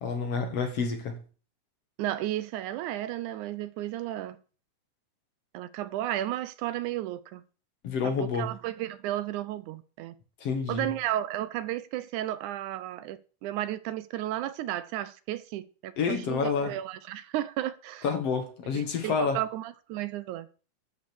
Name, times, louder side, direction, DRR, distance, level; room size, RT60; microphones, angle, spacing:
voice 1, 0.0-1.2 7.8-8.5 10.4-10.9 16.0-16.8 18.0-19.4, left 5 dB, 55° left, 2.5 m, -29 dB
voice 2, 2.0-4.4 5.5-7.4 8.0-10.2 10.7-18.0 18.7-20.5, right 13 dB, 80° right, 2.0 m, -33 dB
12.5 x 5.4 x 7.0 m
omnidirectional pair, 3.6 m